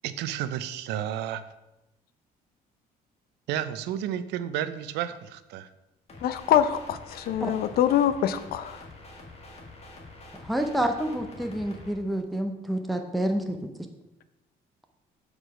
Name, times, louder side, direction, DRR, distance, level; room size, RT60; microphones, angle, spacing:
voice 1, 0.0-1.4 3.5-5.7, right 10 dB, 85° right, 13 dB, 0.6 m, -31 dB
sound 1, 6.1-11.9, left 2 dB, 35° left, 1.7 m, -46 dB
voice 2, 6.2-8.8, left 10 dB, 65° left, 12 dB, 0.6 m, -24 dB
voice 3, 10.4-13.7, right 1 dB, ahead, 4 dB, 0.7 m, -28 dB
8.0 x 4.8 x 4.9 m, 0.98 s
cardioid pair, 110°, 17 cm